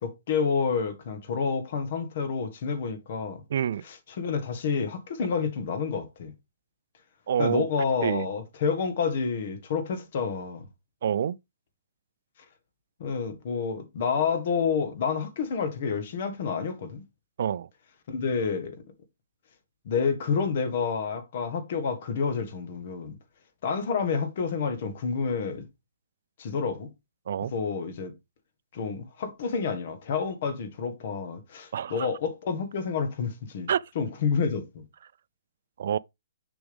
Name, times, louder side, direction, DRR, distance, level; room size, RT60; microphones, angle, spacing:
voice 1, 0.0-3.4 3.8-6.3 7.4-10.7 13.0-17.0 18.1-18.8 19.8-23.2 23.6-25.6 26.4-26.9 27.5-28.1 28.7-33.7 33.9-34.8, left 5 dB, 45° left, 1.7 m, -29 dB
voice 2, 3.5-3.8 7.3-7.7 8.0-8.3 11.0-11.4 17.4-17.7 27.3-27.5 31.7-32.1 33.7-33.8 35.8-36.0, right 9 dB, 55° right, 0.3 m, -27 dB
6.9 x 6.1 x 3.5 m
hypercardioid pair, 160°, 0 cm